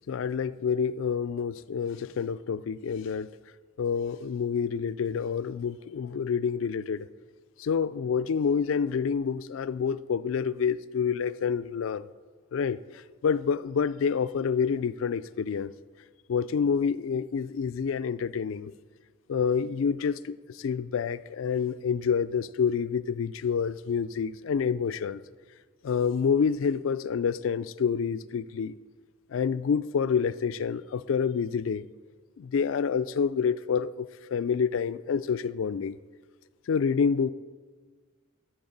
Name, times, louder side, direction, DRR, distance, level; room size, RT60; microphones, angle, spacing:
voice 1, 0.1-3.3 3.8-7.1 7.6-12.1 12.5-12.8 13.2-15.7 16.3-18.7 19.3-25.2 25.8-28.7 29.3-31.8 32.4-36.0 36.7-37.3, left 6 dB, 80° left, 0.4 m, -28 dB
11.0 x 4.6 x 7.9 m
head